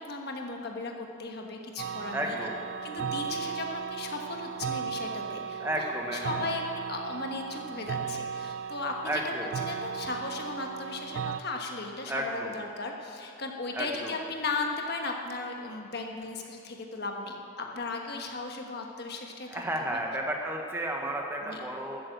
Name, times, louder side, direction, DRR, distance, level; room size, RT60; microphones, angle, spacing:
voice 1, 0.0-2.4 2.8-19.6 21.5-21.6, left 3 dB, 50° left, 2 dB, 1.3 m, -36 dB
sound 1, 1.8-11.4, right 6 dB, 65° right, 0.4 m, -36 dB
voice 2, 2.1-2.6 5.6-6.4 9.0-9.5 12.1-12.6 13.7-14.2 19.5-22.0, right 1 dB, 10° right, 0 dB, 1.1 m, -32 dB
13.0 x 9.4 x 7.9 m, 2.7 s
head